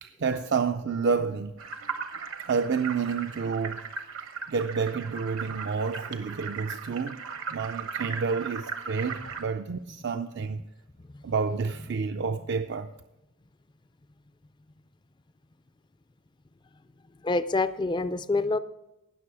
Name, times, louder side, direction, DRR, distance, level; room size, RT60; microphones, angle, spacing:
voice 1, 0.0-1.6 2.5-3.9 4.5-7.2 7.5-10.6 11.2-12.9, right 5 dB, 55° right, 0.4 m, -29 dB
sound 1, 1.6-9.4, right 5 dB, 75° right, 1.1 m, -38 dB
voice 2, 17.2-18.6, left 3 dB, 20° left, 0.4 m, -27 dB
18.5 x 6.7 x 4.8 m
head